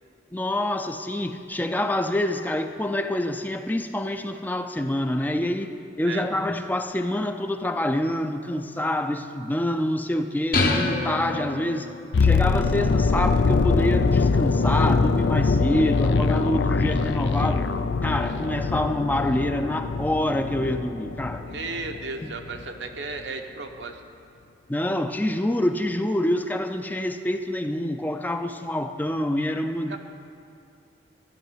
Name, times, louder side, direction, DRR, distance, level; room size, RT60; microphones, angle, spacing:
voice 1, 0.3-11.9 12.2-17.7 18.0-21.4 22.2-22.3 24.7-30.0, left 1 dB, 10° left, 7 dB, 0.4 m, -26 dB
sound 1, 10.5-12.2, left 3 dB, 55° left, 1.0 m, -26 dB
sound 2, 12.1-22.1 22.4-22.6, left 4 dB, 85° left, 0.5 m, -23 dB
voice 2, 21.5-24.0 29.9-30.0, right 3 dB, 80° right, 4 dB, 1.0 m, -34 dB
12.0 x 6.5 x 9.0 m, 2.5 s
head